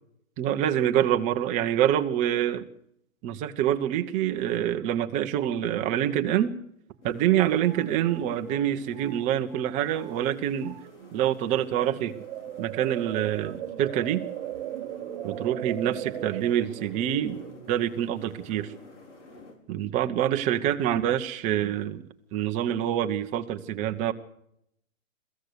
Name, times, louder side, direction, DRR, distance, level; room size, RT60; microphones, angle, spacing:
voice 1, 0.4-2.6 3.2-6.5 7.0-10.8 11.1-12.2 12.6-14.3 15.2-17.4 17.7-18.7 19.7-24.1, right 11 dB, 15° right, 8 dB, 0.9 m, -26 dB
sound 1, 6.9-7.0 7.2-9.7 10.0-10.3 10.6-11.1 11.6-18.5, right 12 dB, 40° right, 1.1 m, -39 dB
sound 2, 7.0-19.6, left 3 dB, 60° left, 5.6 m, -49 dB
22.5 x 15.5 x 8.1 m, 0.75 s
hypercardioid pair, 150°, 41 cm